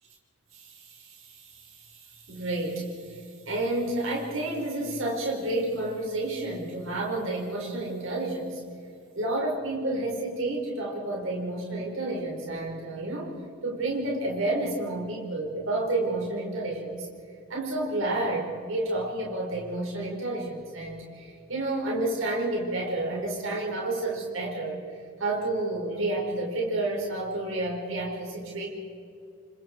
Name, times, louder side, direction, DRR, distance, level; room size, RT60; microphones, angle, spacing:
voice 1, 0.5-8.6 9.2-13.4 13.6-17.1 17.5-24.8 25.2-28.7, right 2 dB, 65° right, -2 dB, 5.4 m, -30 dB
29.5 x 25.5 x 4.8 m, 2.4 s
head